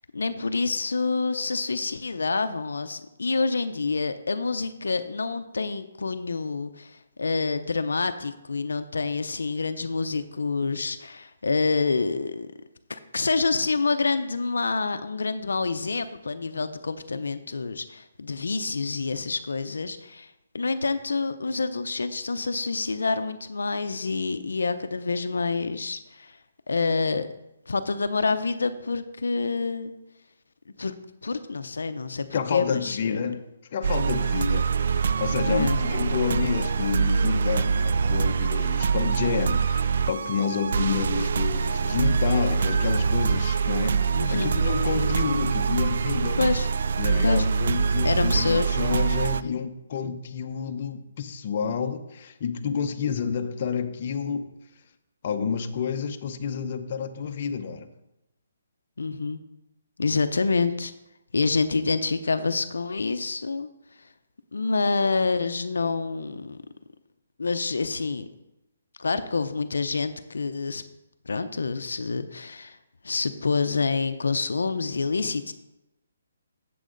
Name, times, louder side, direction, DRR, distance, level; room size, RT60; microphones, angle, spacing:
voice 1, 0.1-12.5 12.9-26.4 26.7-27.3 27.7-29.9 30.8-30.9 31.2-33.2 35.5-35.8 44.1-44.6 46.4-46.7 47.2-47.4 48.0-48.8 49.4-49.6 50.0-50.1 59.0-59.4 60.0-60.9 61.3-63.7 64.5-66.6 67.4-68.3 69.0-70.8 71.3-72.8 73.0-75.5, left 4 dB, 85° left, 10 dB, 0.6 m, -27 dB
voice 2, 32.3-33.4 33.7-46.4 47.0-54.5 55.2-57.9, left 6 dB, 45° left, 6 dB, 0.8 m, -29 dB
sound 1, 33.8-49.4, right 5 dB, 60° right, 0.3 m, -24 dB
8.3 x 7.6 x 3.9 m, 0.90 s
hypercardioid pair, 155°, 0 cm